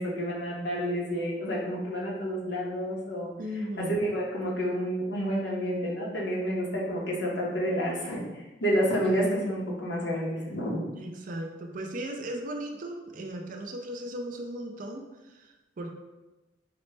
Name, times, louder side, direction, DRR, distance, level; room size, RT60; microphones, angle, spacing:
voice 1, 0.0-3.3 3.8-10.9, equal, 70° left, -3 dB, 0.9 m, -29 dB
voice 2, 3.4-4.1 10.9-15.1 15.3-15.9, right 1 dB, 45° right, 3 dB, 0.4 m, -37 dB
5.0 x 2.0 x 3.3 m, 1.1 s
head